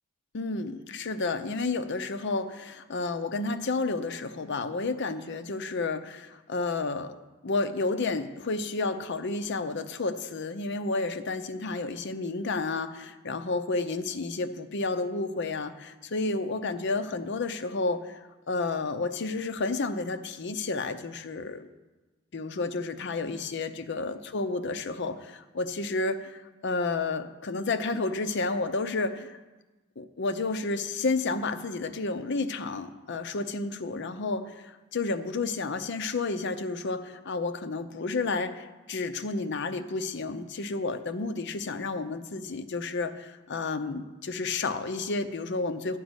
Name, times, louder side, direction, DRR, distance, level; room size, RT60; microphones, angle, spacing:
voice 1, 0.3-7.2 7.4-21.7 22.3-29.4 30.0-46.0, left 3 dB, 55° left, 9 dB, 0.6 m, -31 dB
11.0 x 5.1 x 8.0 m, 1.2 s
head